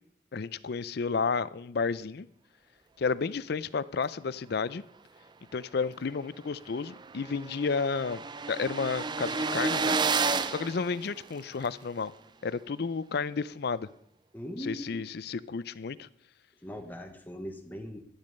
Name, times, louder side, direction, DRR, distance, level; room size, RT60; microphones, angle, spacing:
voice 1, 0.3-2.3 3.0-4.8 5.5-8.2 8.5-10.0 10.5-12.1 12.4-13.9 14.6-16.1, left 5 dB, 55° left, 17 dB, 0.5 m, -31 dB
sound 1, 6.1-6.2 6.5-6.6 6.8-11.7, right 4 dB, 25° right, 0.4 m, -31 dB
voice 2, 14.3-15.0 16.6-18.0, equal, 10° left, 4 dB, 1.1 m, -40 dB
11.5 x 10.5 x 5.4 m, 0.70 s
head